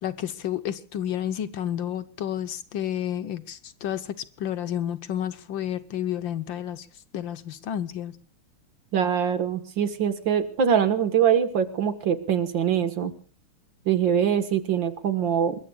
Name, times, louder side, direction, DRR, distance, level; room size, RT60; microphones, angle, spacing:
voice 1, 0.0-6.9 7.1-8.2, left 10 dB, 70° left, 1.7 m, -31 dB
voice 2, 8.9-13.1 13.9-15.6, right 8 dB, 65° right, 2.2 m, -23 dB
28.0 x 21.5 x 2.4 m
omnidirectional pair, 2.3 m